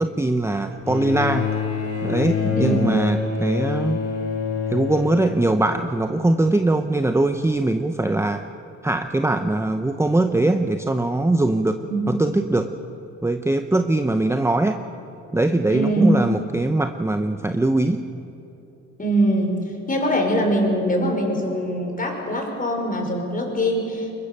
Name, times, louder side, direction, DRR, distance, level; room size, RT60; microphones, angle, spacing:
voice 1, 0.0-1.5 2.0-4.0 4.7-8.5 8.8-12.7 13.2-14.8 15.3-18.0, right 2 dB, 10° right, 7 dB, 0.8 m, -21 dB
Bowed string instrument, 0.8-6.3 7.4-7.5, left 5 dB, 55° left, 3.6 m, -26 dB
voice 2, 15.7-16.1 19.0-19.6 19.9-24.2, right 1 dB, 25° left, 2 dB, 5.2 m, -22 dB
22.0 x 22.0 x 6.8 m, 3.0 s
cardioid pair, 90°, 30 cm